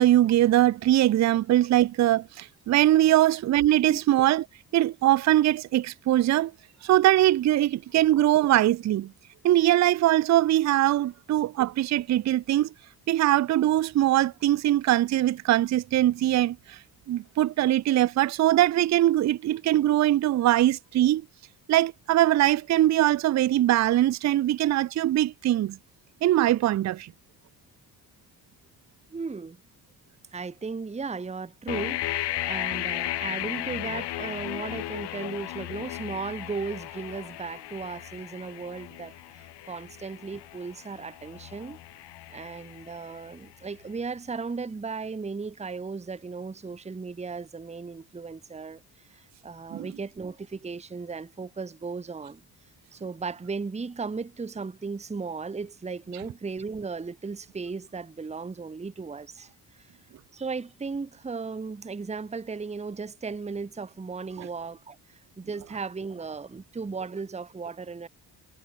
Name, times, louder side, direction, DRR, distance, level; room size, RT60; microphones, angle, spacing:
voice 1, 0.0-4.4 4.7-6.5 6.8-9.1 9.4-12.7 13.1-16.8 17.1-21.2 21.7-25.8 26.2-27.1 49.7-49.9 64.4-64.5, right 14 dB, 45° right, 0.4 m, -22 dB
voice 2, 29.1-29.6 30.3-41.8 42.3-60.0 60.3-68.1, right 4 dB, 15° right, 0.8 m, -36 dB
sound 1, 31.7-43.5, left 15 dB, 75° left, 0.9 m, -35 dB
cardioid pair, 70°, 42 cm